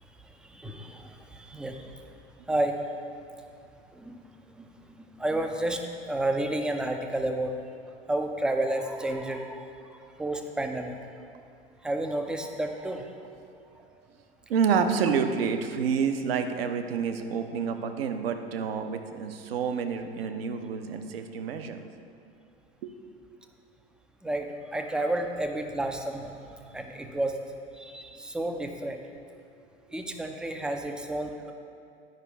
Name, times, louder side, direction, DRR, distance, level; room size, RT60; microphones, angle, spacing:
voice 1, 0.0-2.1 2.5-2.8 3.9-4.2 4.5-7.6 8.1-11.0 11.8-13.2 24.2-27.4 27.7-29.0 29.9-31.5, right 1 dB, ahead, 4 dB, 0.4 m, -31 dB
voice 2, 14.5-21.8 22.8-22.9, right 6 dB, 60° right, 7 dB, 0.8 m, -28 dB
10.5 x 5.2 x 4.6 m, 2.4 s
figure-of-eight pair, 90°, 33 cm